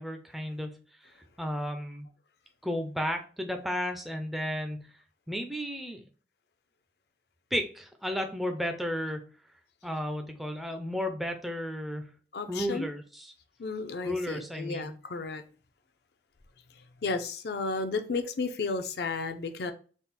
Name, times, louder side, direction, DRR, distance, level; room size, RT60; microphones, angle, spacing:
voice 1, 0.0-2.1 2.6-4.9 5.3-6.0 7.5-9.3 9.8-12.1 12.5-13.3 14.0-15.0, equal, ahead, 0.4 m, -33 dB
voice 2, 12.3-12.9 13.6-15.4 17.0-19.7, left 4 dB, 60° left, 0.5 m, -33 dB
3.6 x 2.4 x 4.0 m
head